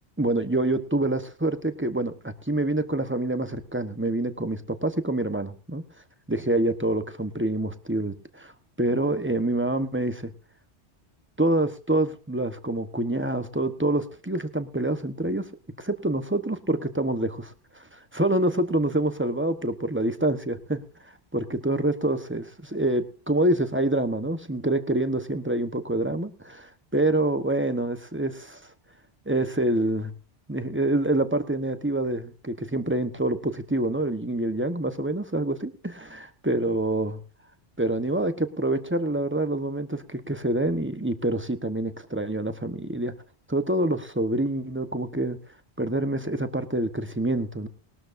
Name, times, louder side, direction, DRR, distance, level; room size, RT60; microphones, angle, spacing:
voice 1, 0.2-5.8 6.3-8.5 8.8-10.3 11.4-15.5 15.8-20.8 21.3-28.6 29.3-30.1 30.5-37.2 37.8-43.1 43.5-45.4 45.8-47.7, right 1 dB, 10° right, 9 dB, 1.0 m, -26 dB
20.5 x 13.0 x 2.6 m, 0.35 s
omnidirectional pair, 1.1 m